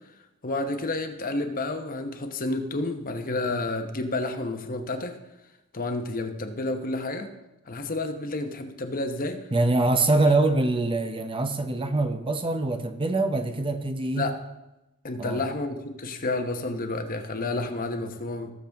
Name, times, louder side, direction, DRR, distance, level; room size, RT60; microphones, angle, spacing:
voice 1, 0.4-5.2 5.7-7.3 7.7-9.5 10.3-10.4 14.1-14.3 15.0-18.5, left 2 dB, 40° left, 1.0 m, -30 dB
voice 2, 9.5-14.3 15.2-15.4, right 2 dB, 25° right, 0.7 m, -24 dB
19.0 x 6.9 x 3.5 m
head